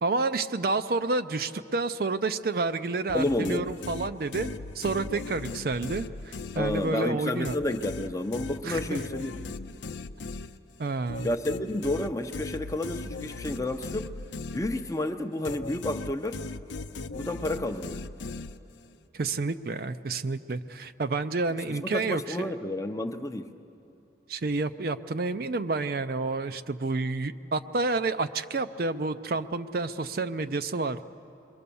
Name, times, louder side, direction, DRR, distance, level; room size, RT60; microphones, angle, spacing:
voice 1, 0.0-4.5 4.8-7.5 8.6-9.0 10.8-11.3 19.1-22.5 24.3-31.0, right 3 dB, 50° right, 10 dB, 0.5 m, -29 dB
sound 1, 3.1-7.1 7.4-15.1 15.4-18.9, left 3 dB, 80° left, 0.6 m, -38 dB
voice 2, 3.1-3.7 6.6-9.4 11.2-14.1 14.5-16.4 17.1-18.1 21.7-23.5, left 1 dB, 15° left, 7 dB, 0.6 m, -30 dB
27.0 x 22.0 x 7.0 m, 2.8 s
head